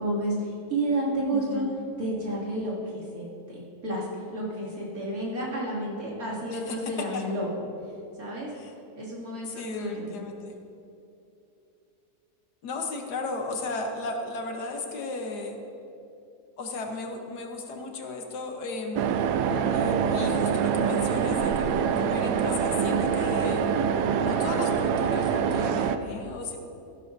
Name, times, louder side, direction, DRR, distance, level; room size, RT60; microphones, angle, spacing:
voice 1, 0.0-1.7 2.0-7.5 8.2-8.5 8.9-10.1, right 1 dB, 60° right, -6 dB, 3.0 m, -31 dB
voice 2, 1.3-1.8 6.5-7.3 8.5-8.7 9.4-10.6 12.6-15.6 16.6-19.0 19.7-23.7 24.2-26.6, left 3 dB, 75° left, 3 dB, 1.6 m, -35 dB
sound 1, 19.0-26.0, right 7 dB, 80° right, 1.1 m, -25 dB
15.0 x 12.0 x 2.7 m, 2.7 s
omnidirectional pair, 1.7 m